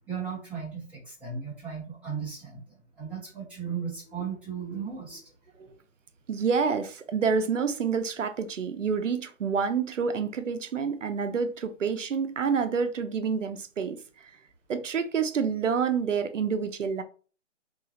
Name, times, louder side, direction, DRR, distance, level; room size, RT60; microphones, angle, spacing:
voice 1, 0.1-5.2, right 6 dB, 5° right, 1.4 m, -36 dB
voice 2, 6.3-14.3 14.7-17.0, right 6 dB, 75° right, 0.7 m, -28 dB
4.8 x 2.8 x 2.7 m
hypercardioid pair, 160°, 37 cm